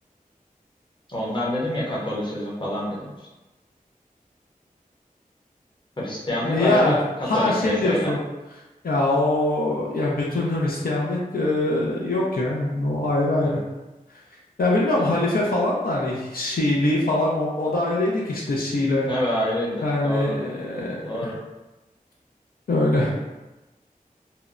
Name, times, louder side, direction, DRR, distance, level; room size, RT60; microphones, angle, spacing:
voice 1, 1.1-3.3 6.0-7.0 7.3-8.1 13.4-13.6 15.0-15.1 19.1-20.3 21.0-21.3, left 1 dB, 30° left, -6 dB, 0.8 m, -27 dB
voice 2, 6.4-7.0 7.3-8.2 8.8-13.6 14.6-19.1 19.8-20.9 21.2-21.3 22.7-23.1, left 2 dB, 90° left, -4 dB, 0.5 m, -23 dB
2.8 x 2.1 x 2.4 m, 1.1 s
wide cardioid pair, 75°, 15 cm